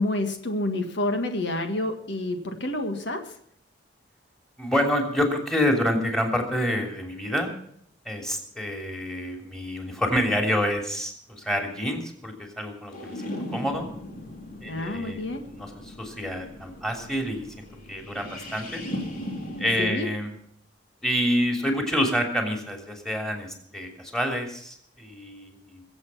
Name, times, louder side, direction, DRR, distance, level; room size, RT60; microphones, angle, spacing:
voice 1, 0.0-3.4 14.6-15.5 19.8-20.1, left 2 dB, 65° left, 6 dB, 1.8 m, -28 dB
voice 2, 4.6-7.5 8.0-13.9 14.6-15.2 15.4-18.8 19.6-20.3 21.0-25.8, equal, 5° left, 3 dB, 3.1 m, -28 dB
sound 1, 12.9-19.8, left 1 dB, 50° left, 3.4 m, -38 dB
23.0 x 8.1 x 5.6 m, 0.67 s
head